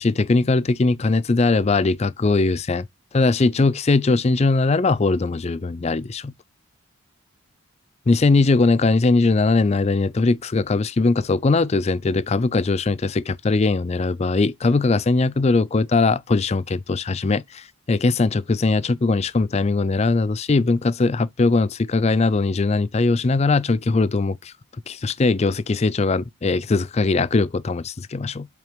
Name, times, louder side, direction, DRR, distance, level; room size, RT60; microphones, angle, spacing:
voice 1, 0.0-2.9 3.1-6.3 8.1-17.4 17.9-24.4 24.9-28.5, left 3 dB, 30° left, 0.4 m, -20 dB
7.6 x 5.1 x 3.4 m
head